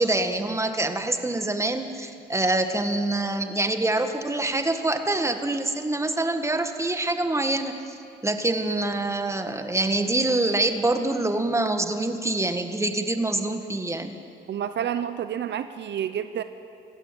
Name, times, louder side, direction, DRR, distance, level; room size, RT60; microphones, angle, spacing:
voice 1, 0.0-7.7 8.2-14.1, right 2 dB, 15° right, 7 dB, 1.9 m, -25 dB
voice 2, 14.5-16.4, right 9 dB, 60° right, 11 dB, 0.9 m, -29 dB
25.0 x 16.5 x 8.9 m, 2.6 s
cardioid pair, 90°, 20 cm